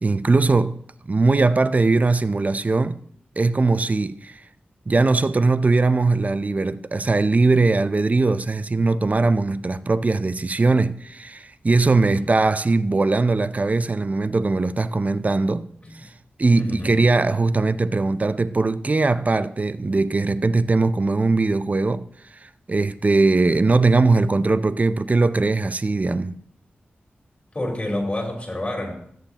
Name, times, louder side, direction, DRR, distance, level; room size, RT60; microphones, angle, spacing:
voice 1, 0.0-3.0 3.4-4.4 4.9-15.7 15.9-16.1 16.4-26.4, right 3 dB, 40° right, 0.5 m, -20 dB
voice 2, 11.9-12.2 15.8-15.9 16.5-17.0 27.5-28.9, left 1 dB, 25° left, 4.3 m, -28 dB
13.5 x 9.1 x 2.9 m
cardioid pair, 50°, 4 cm